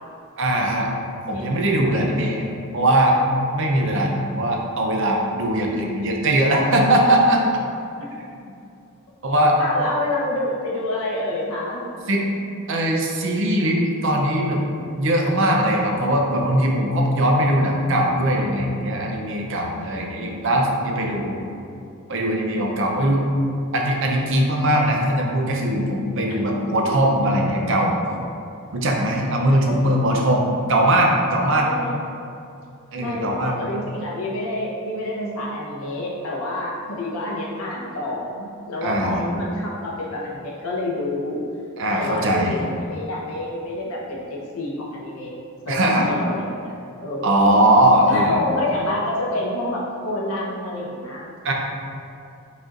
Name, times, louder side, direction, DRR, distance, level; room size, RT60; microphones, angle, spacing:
voice 1, 0.4-0.9 1.3-3.2 3.5-7.4 8.2-8.3 9.2-9.6 12.1-12.2 12.7-14.6 15.0-21.4 22.1-23.2 23.7-27.9 28.7-31.7 32.9-33.6 38.8-39.2 41.8-42.6 45.7-46.1 47.2-48.4 51.4-51.5, right 1 dB, 55° right, 0 dB, 0.6 m, -20 dB
voice 2, 9.6-11.8 26.8-26.9 29.6-29.9 31.6-32.0 33.0-41.4 41.9-45.3 45.6-46.7 47.0-47.5 48.1-51.3, left 1 dB, 70° left, -4 dB, 0.9 m, -28 dB
5.0 x 4.2 x 2.5 m, 2.6 s
head